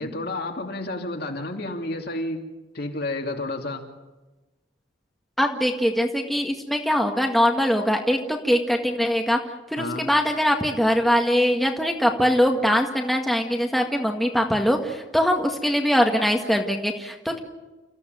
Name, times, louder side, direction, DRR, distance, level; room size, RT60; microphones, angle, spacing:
voice 1, 0.0-2.4 2.7-3.8 9.8-10.0, left 2 dB, 50° left, 3 dB, 2.9 m, -30 dB
voice 2, 5.4-9.4 9.7-17.4, equal, ahead, 1 dB, 1.8 m, -22 dB
29.5 x 15.5 x 9.3 m, 1.1 s
head